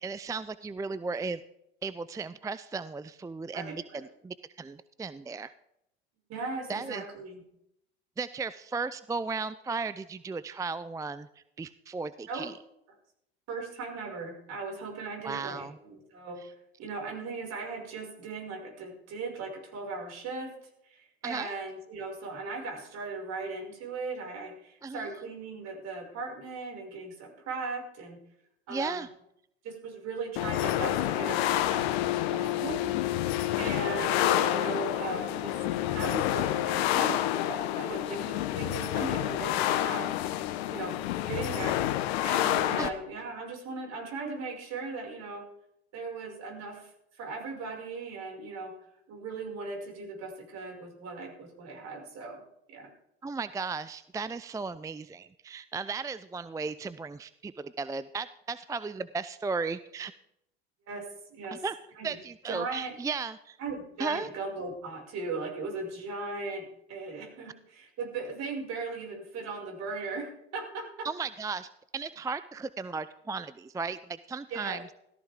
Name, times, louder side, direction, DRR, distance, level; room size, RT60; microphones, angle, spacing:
voice 1, 0.0-1.4 1.8-5.5 6.7-7.0 8.2-11.3 11.6-12.5 15.2-15.8 21.2-21.5 24.8-25.1 28.7-29.1 42.8-42.9 53.2-60.1 61.5-61.7 62.0-63.6 64.0-64.3 71.0-74.8, right 4 dB, 10° right, 15 dB, 0.5 m, -35 dB
voice 2, 3.5-4.0 6.3-7.4 12.3-12.4 13.5-16.4 16.8-20.5 20.9-28.2 28.7-29.1 29.6-32.8 33.1-33.3 33.6-35.6 35.9-40.1 40.7-41.0 41.3-41.8 42.2-45.5 45.9-48.7 49.1-52.4 52.7-52.9 60.9-61.6 62.0-62.2 62.5-62.9 63.6-71.1 74.5-74.8, right 3 dB, 55° right, 1 dB, 6.1 m, -38 dB
sound 1, 30.4-42.9, left 13 dB, 70° left, 1.3 m, -28 dB
17.0 x 14.5 x 3.7 m, 0.78 s
hypercardioid pair, 75°, 32 cm